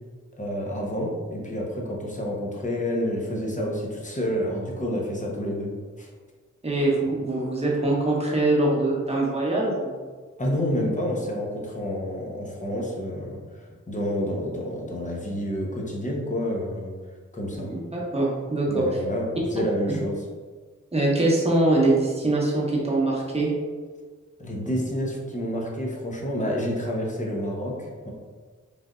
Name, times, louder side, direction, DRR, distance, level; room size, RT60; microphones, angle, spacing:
voice 1, 0.4-6.1 10.4-16.9 17.3-17.7 18.7-20.3 24.4-28.1, equal, 25° left, -2 dB, 0.9 m, -29 dB
voice 2, 6.6-10.0 17.6-18.9 20.9-23.5, right 2 dB, 20° right, -4 dB, 1.0 m, -23 dB
3.3 x 2.5 x 2.4 m, 1.5 s
cardioid pair, 45°, 31 cm